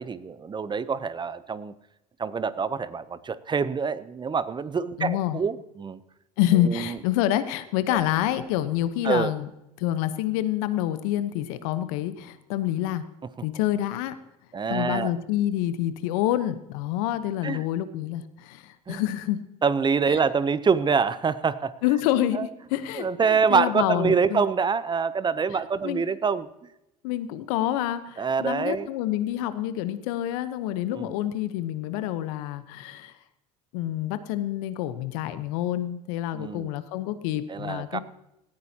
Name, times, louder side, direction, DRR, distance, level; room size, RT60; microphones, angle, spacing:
voice 1, 0.0-1.7 2.2-6.0 6.6-7.0 7.9-8.0 9.0-9.3 14.5-15.1 17.4-17.6 18.9-19.0 19.6-21.7 22.3-22.5 23.0-26.5 28.2-28.9 30.9-31.1 36.3-36.7 37.5-38.0, right 5 dB, 25° right, 16 dB, 0.7 m, -25 dB
voice 2, 5.0-5.4 6.4-9.5 9.8-13.0 13.4-14.2 14.7-19.4 21.8-24.4 25.8-26.0 27.0-33.1 33.7-38.0, left 12 dB, 70° left, 12 dB, 1.0 m, -27 dB
18.5 x 14.5 x 2.9 m, 0.89 s
hypercardioid pair, 80°, 19 cm